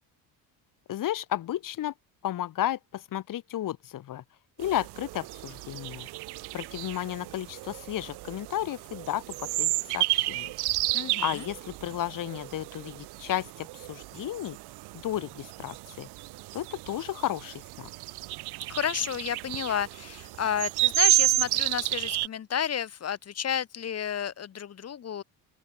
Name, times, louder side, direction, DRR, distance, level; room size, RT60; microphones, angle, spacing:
voice 1, 0.9-1.9 2.2-4.2 4.6-6.1 6.5-10.5 11.2-14.6 14.9-16.1 16.5-17.9, left 12 dB, 55° left, 3.3 m, -33 dB
sound 1, 4.6-22.3, right 20 dB, 80° right, 2.2 m, -31 dB
voice 2, 10.9-11.4 18.7-25.2, left 9 dB, 40° left, 3.3 m, -31 dB
open air
cardioid pair, 130°, 39 cm